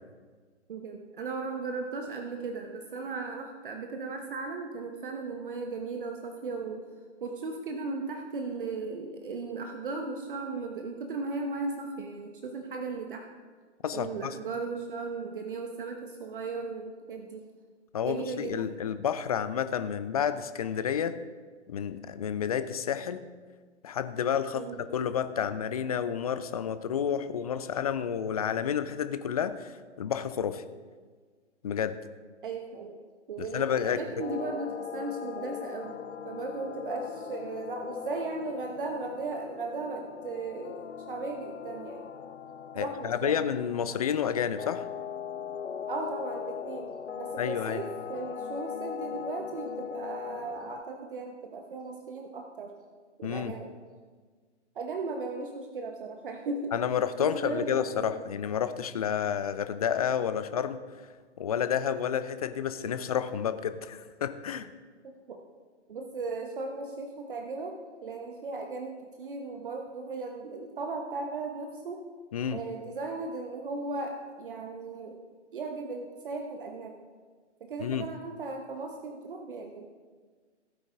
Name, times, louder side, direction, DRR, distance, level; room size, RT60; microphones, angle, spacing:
voice 1, 0.7-6.8 7.2-13.3 13.9-17.4 18.0-18.8 24.5-24.8 32.4-32.9 33.3-35.9 36.2-42.1 42.7-43.5 45.9-52.7 53.2-53.7 54.7-56.7 57.2-58.3 65.3-65.4 65.9-72.1 72.5-75.2 75.5-77.0 77.6-79.9, right 3 dB, 45° right, 3 dB, 1.2 m, -36 dB
voice 2, 13.8-14.3 17.9-21.2 21.7-23.2 23.8-24.7 24.9-30.6 31.6-32.0 33.4-34.0 42.7-44.9 47.4-47.8 53.2-53.5 56.7-60.8 61.4-64.7 72.3-72.6 77.8-78.0, left 8 dB, 30° left, 12 dB, 0.5 m, -30 dB
sound 1, 34.2-50.8, left 8 dB, 75° left, 0.6 m, -40 dB
16.5 x 9.1 x 3.6 m, 1.5 s
figure-of-eight pair, 130°, 36 cm